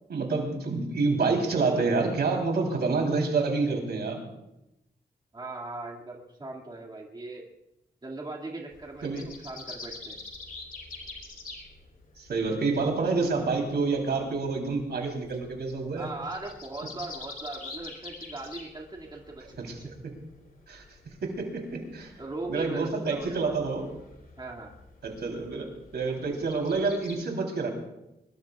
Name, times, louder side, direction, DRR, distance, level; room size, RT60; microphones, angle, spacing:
voice 1, 0.1-4.2 9.0-9.3 12.2-16.1 19.6-19.8 20.7-20.8 21.2-22.1 22.5-23.9 25.0-27.7, right 4 dB, 75° right, 1 dB, 3.6 m, -28 dB
voice 2, 5.3-7.5 8.0-10.2 16.0-19.9 22.2-23.5 24.4-24.7, right 2 dB, 25° right, -1 dB, 2.3 m, -39 dB
sound 1, 8.7-27.2, left 3 dB, 55° left, 3.1 m, -47 dB
23.5 x 21.5 x 2.4 m, 0.89 s
wide cardioid pair, 125°, 17 cm